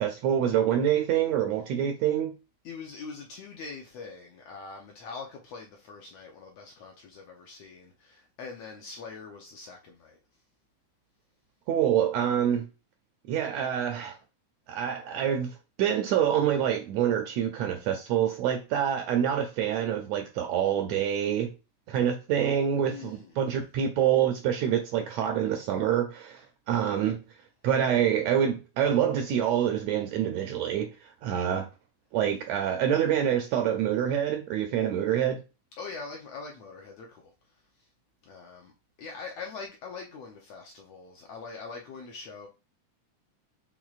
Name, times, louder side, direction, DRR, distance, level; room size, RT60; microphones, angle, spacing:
voice 1, 0.0-2.3 11.7-12.7 13.3-14.2 14.7-21.5 21.9-27.2 27.6-31.7 32.1-35.4, right 9 dB, 80° right, 1.6 m, -26 dB
voice 2, 2.6-10.2 22.8-23.4 35.8-37.9 38.2-38.7 39.0-42.5, left 4 dB, 75° left, 1.6 m, -43 dB
6.2 x 3.6 x 2.4 m
omnidirectional pair, 3.5 m